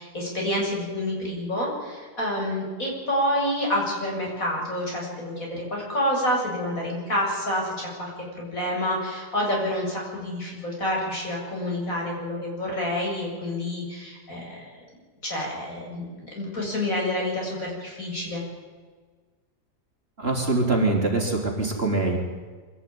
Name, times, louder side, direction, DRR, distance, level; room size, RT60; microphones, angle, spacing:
voice 1, 0.0-8.1 8.3-14.6 15.2-18.4, left 1 dB, 55° left, -2 dB, 7.9 m, -28 dB
voice 2, 20.2-22.2, right 2 dB, 35° right, 0 dB, 4.3 m, -23 dB
25.0 x 17.0 x 9.7 m, 1.5 s
omnidirectional pair, 1.7 m